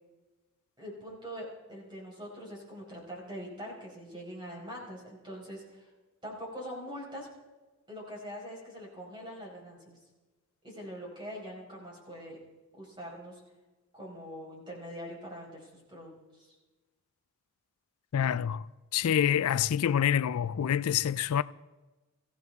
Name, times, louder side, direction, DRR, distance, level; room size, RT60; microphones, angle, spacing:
voice 1, 0.8-5.9 6.2-7.3 7.9-10.0 10.6-12.4 12.8-13.4 13.9-16.5, equal, 20° right, 4.8 m, -43 dB
voice 2, 18.1-18.7 18.9-21.4, left 9 dB, 85° left, 0.4 m, -26 dB
22.0 x 16.0 x 3.6 m
head